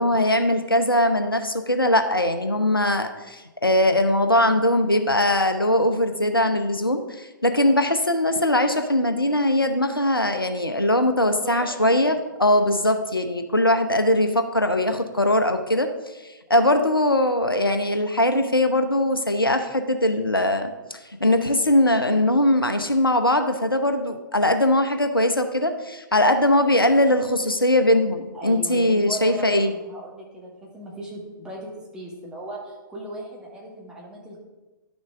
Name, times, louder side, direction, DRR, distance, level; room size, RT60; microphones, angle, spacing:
voice 1, 0.0-16.1 16.5-29.7, left 1 dB, 85° left, 7 dB, 0.8 m, -21 dB
voice 2, 11.4-12.2 26.5-26.9 28.3-34.4, right 1 dB, 5° right, -3 dB, 1.8 m, -37 dB
11.5 x 6.3 x 3.5 m, 1.1 s
figure-of-eight pair, 120°, 12 cm